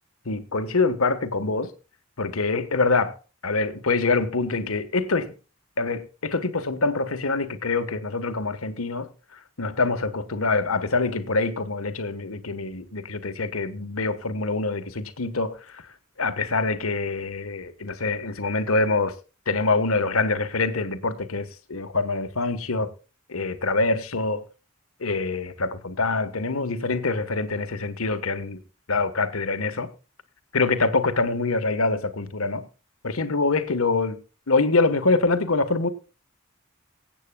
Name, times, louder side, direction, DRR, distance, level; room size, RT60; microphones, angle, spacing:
voice 1, 0.2-1.7 2.2-3.1 3.4-5.3 5.8-9.1 9.6-15.8 16.2-19.1 19.5-22.9 23.3-24.5 25.0-28.6 28.9-29.9 30.5-32.7 33.0-34.2 34.5-35.9, left 3 dB, 90° left, 1.4 m, -25 dB
25.0 x 8.3 x 2.3 m
head